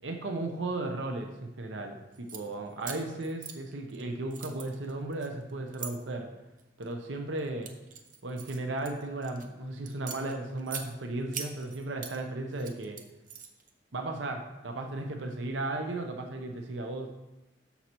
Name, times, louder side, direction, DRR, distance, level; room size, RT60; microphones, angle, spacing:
voice 1, 0.0-6.3 6.8-7.7 8.2-13.0 13.9-17.1, right 2 dB, 80° right, 4 dB, 0.8 m, -35 dB
sound 1, 2.1-2.4 2.8-4.0 4.3-5.9 6.6-6.9 7.4-9.5 9.9-10.9 11.3-12.2 12.5-13.7, right 7 dB, 45° right, 0.8 m, -42 dB
12.5 x 5.6 x 3.0 m, 0.99 s
head